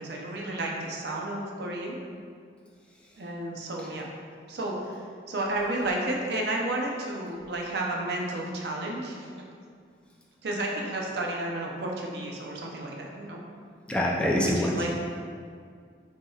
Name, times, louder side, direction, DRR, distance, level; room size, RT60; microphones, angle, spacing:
voice 1, 0.0-2.0 3.2-4.1 4.5-4.9 5.3-9.3 10.4-13.4 14.4-14.9, right 1 dB, 65° right, -1 dB, 0.6 m, -32 dB
voice 2, 13.9-14.9, equal, 5° left, -4 dB, 0.3 m, -25 dB
5.8 x 2.8 x 2.3 m, 2.1 s
head